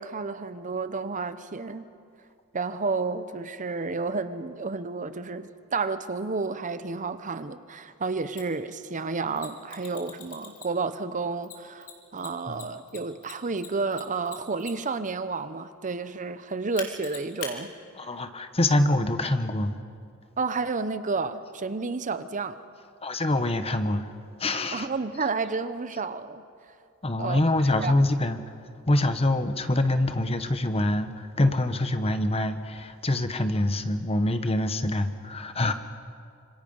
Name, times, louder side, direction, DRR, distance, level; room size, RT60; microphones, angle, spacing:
voice 1, 0.0-1.8 2.5-17.7 20.4-22.6 24.7-26.4 27.2-27.4 27.8-27.9, right 4 dB, 35° right, 12 dB, 0.8 m, -31 dB
Mechanisms, 8.4-8.5 9.4-10.9 11.4-15.0 16.8-17.5, left 7 dB, 85° left, 2.8 m, -41 dB
voice 2, 18.0-19.8 23.0-24.1 24.4-24.9 27.0-28.4 28.9-35.7, left 1 dB, 30° left, 9 dB, 1.1 m, -25 dB
26.0 x 25.5 x 5.5 m, 2.4 s
head